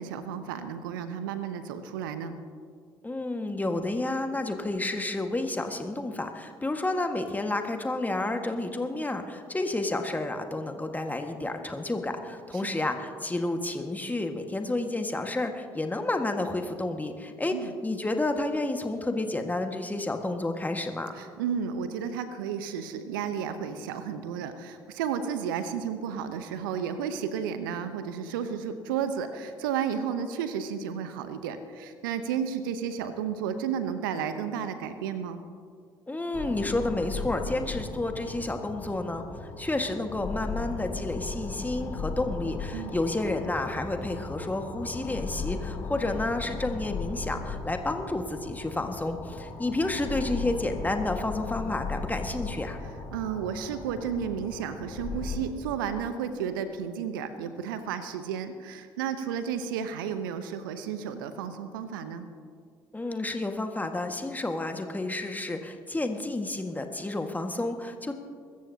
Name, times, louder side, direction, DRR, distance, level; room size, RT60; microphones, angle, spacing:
voice 1, 0.0-2.3 12.5-12.6 17.5-17.7 21.1-35.4 42.7-43.0 53.1-62.3, right 7 dB, 75° right, 10 dB, 0.8 m, -32 dB
voice 2, 3.0-21.2 36.1-52.8 62.9-68.1, left 2 dB, 15° left, 5 dB, 1.6 m, -30 dB
sound 1, 36.3-55.4, left 4 dB, 45° left, 3.0 m, -37 dB
23.5 x 14.0 x 2.8 m, 2.1 s
figure-of-eight pair, 50°, 11 cm